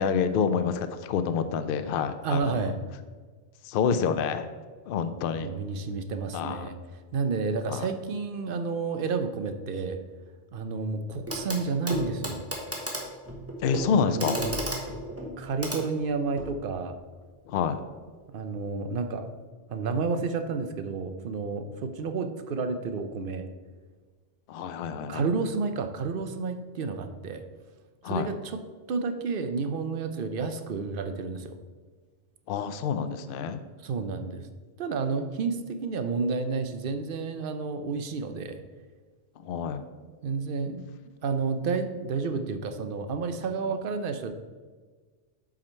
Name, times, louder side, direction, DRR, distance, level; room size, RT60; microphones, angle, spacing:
voice 1, 0.0-2.7 3.6-4.5 4.9-5.5 6.3-6.7 7.7-7.9 13.6-14.4 17.5-17.8 24.5-25.2 28.0-28.3 32.5-33.6 39.4-39.8, left 6 dB, 60° left, 10 dB, 0.6 m, -28 dB
voice 2, 2.2-2.8 5.4-6.8 7.1-10.0 10.5-12.4 14.1-14.5 15.4-17.0 18.3-19.3 19.7-23.5 25.1-27.4 28.1-28.6 28.9-31.6 33.8-34.5 34.8-38.6 40.2-40.8 41.2-44.3, right 4 dB, 60° right, 8 dB, 0.7 m, -30 dB
Clock, 11.3-11.6 11.9-16.6 17.8-17.9, equal, 15° right, 1.1 m, -34 dB
7.4 x 4.9 x 4.3 m, 1.4 s
omnidirectional pair, 1.2 m